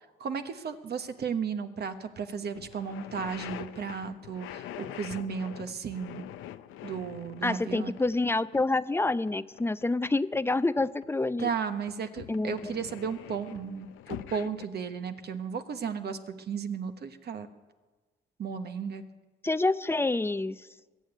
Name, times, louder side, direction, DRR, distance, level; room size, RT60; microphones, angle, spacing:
voice 1, 0.0-6.2 6.8-7.9 11.4-17.5 18.4-19.0, right 6 dB, 55° right, 8 dB, 1.2 m, -34 dB
sound 1, 2.1-2.2 2.5-11.1 11.4-14.7, left 12 dB, 90° left, 0.7 m, -44 dB
voice 2, 7.4-11.5 12.3-12.7 19.4-20.6, left 2 dB, 10° left, 14 dB, 0.5 m, -27 dB
21.5 x 7.1 x 9.3 m, 1.3 s
cardioid pair, 90°, 20 cm